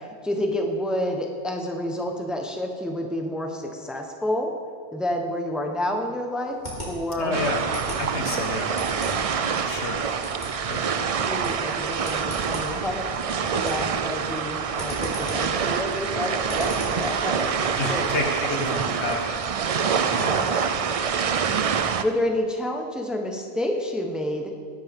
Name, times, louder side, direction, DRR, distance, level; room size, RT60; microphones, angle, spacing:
voice 1, 0.0-4.5 4.9-6.6 6.8-7.4 9.5-9.8 11.0-13.0 13.5-18.1 20.2-20.8 21.7-24.5, left 1 dB, ahead, 2 dB, 1.0 m, -29 dB
sound 1, 6.4-17.1, equal, 40° left, 3.9 m, -39 dB
voice 2, 7.2-8.7 9.6-10.0 10.7-10.8 17.8-19.2 20.1-20.4, left 2 dB, 70° left, 1 dB, 1.8 m, -30 dB
sound 2, 7.3-22.0, right 6 dB, 55° right, 0.4 m, -26 dB
20.0 x 11.0 x 3.7 m, 2.1 s
omnidirectional pair, 1.2 m